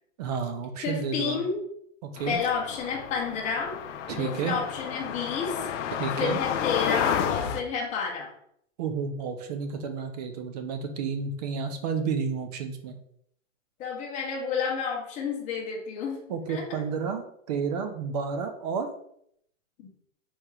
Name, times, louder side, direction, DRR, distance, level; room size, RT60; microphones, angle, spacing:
voice 1, 0.2-1.4 2.0-2.4 4.1-4.6 6.0-6.4 8.8-13.0 16.3-18.9, right 5 dB, 30° right, 7 dB, 0.5 m, -31 dB
voice 2, 0.8-1.6 2.3-3.8 4.1-5.7 6.2-8.3 13.8-16.2 16.5-16.8 19.8-19.9, left 5 dB, 20° left, -1 dB, 0.9 m, -30 dB
sound 1, 2.2-7.6, left 9 dB, 65° left, 0.6 m, -31 dB
4.4 x 3.0 x 3.7 m, 0.70 s
hypercardioid pair, 150°, 39 cm